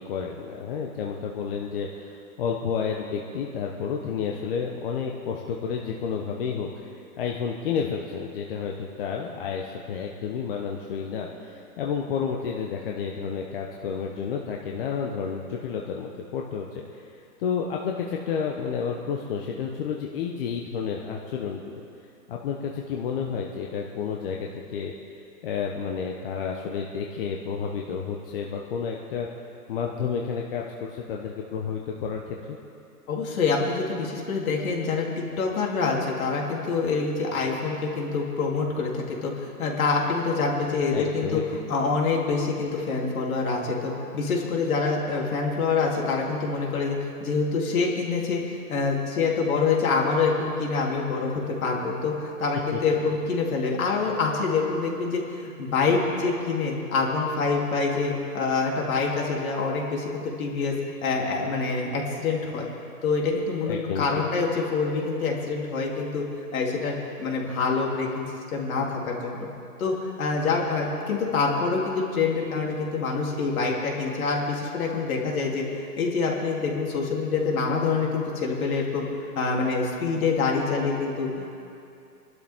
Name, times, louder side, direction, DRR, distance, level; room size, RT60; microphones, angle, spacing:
voice 1, 0.0-21.8 22.3-24.9 25.4-29.3 29.7-32.6 40.9-41.4 52.7-52.8 63.6-64.0, left 6 dB, 35° left, 0 dB, 1.0 m, -31 dB
voice 2, 33.1-35.1 35.4-41.4 41.7-52.1 52.4-62.7 63.0-66.2 66.5-68.2 68.5-69.5 69.8-75.7 76.0-79.1 79.4-81.5, left 4 dB, 60° left, -1 dB, 3.3 m, -26 dB
25.5 x 12.0 x 3.7 m, 2.6 s
hypercardioid pair, 150°, 48 cm